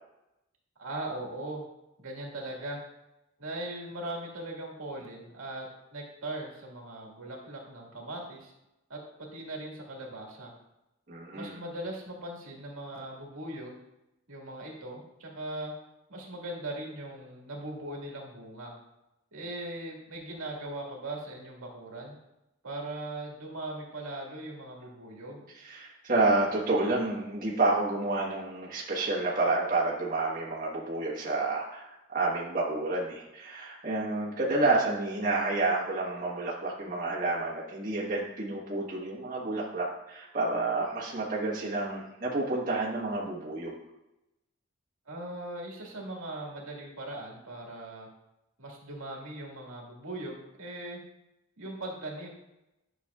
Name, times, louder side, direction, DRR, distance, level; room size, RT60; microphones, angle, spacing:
voice 1, 0.8-1.6 2.0-2.8 3.4-8.5 8.9-9.0 9.3-10.5 11.3-13.8 14.3-15.7 16.1-18.7 19.3-22.2 22.6-25.5 45.1-48.1 48.6-51.0 51.6-52.3, right 1 dB, 85° right, -2 dB, 1.8 m, -39 dB
voice 2, 11.1-11.6 25.6-43.7, right 2 dB, 40° right, -5 dB, 1.3 m, -29 dB
10.0 x 6.1 x 2.4 m, 0.90 s
head